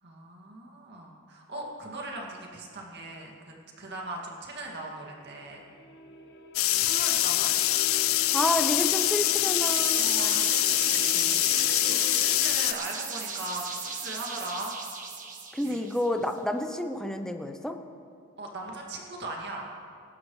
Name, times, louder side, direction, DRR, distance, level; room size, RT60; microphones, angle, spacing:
voice 1, 0.0-5.6 6.7-7.6 10.0-11.4 11.8-14.7 18.4-19.7, right 2 dB, 55° right, -1 dB, 2.2 m, -39 dB
sound 1, 4.3-12.4, equal, 55° left, 1.1 m, -44 dB
sound 2, 6.5-12.7, left 15 dB, 80° left, 0.5 m, -24 dB
voice 2, 8.3-10.2 15.5-17.8, left 1 dB, 5° left, 5 dB, 0.7 m, -29 dB
sound 3, 9.6-16.3, right 5 dB, 40° right, 1.4 m, -36 dB
22.5 x 12.0 x 3.2 m, 2.4 s
head